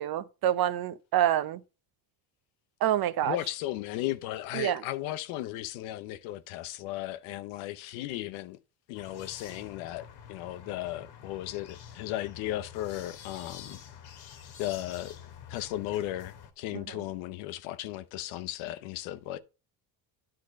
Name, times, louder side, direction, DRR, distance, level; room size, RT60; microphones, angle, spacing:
voice 1, 0.0-1.6 2.8-3.4 4.5-4.8 16.7-16.8, right 12 dB, 50° right, 0.7 m, -27 dB
voice 2, 3.2-8.6 8.9-13.8 14.6-15.2 15.5-19.4, left 14 dB, 90° left, 0.8 m, -36 dB
sound 1, 8.9-16.5, left 8 dB, 55° left, 1.4 m, -48 dB
10.5 x 3.9 x 5.1 m
cardioid pair, 105°, 47 cm